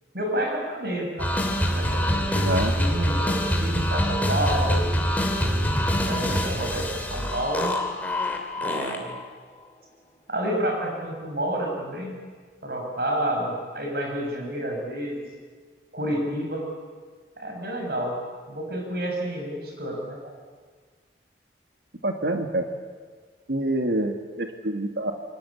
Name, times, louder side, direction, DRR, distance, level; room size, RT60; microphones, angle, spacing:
voice 1, 0.1-1.4 1.7-4.9 5.9-7.8 8.6-9.1 10.3-12.2 12.6-15.2 15.9-16.7 17.4-18.2 18.5-20.3, right 1 dB, 60° right, 2 dB, 6.4 m, -29 dB
sound 1, 1.2-9.3, equal, 10° left, 2.9 m, -25 dB
voice 2, 22.0-22.7 23.5-25.1, right 1 dB, 75° right, 4 dB, 2.0 m, -26 dB
28.5 x 24.0 x 8.5 m, 1.6 s
head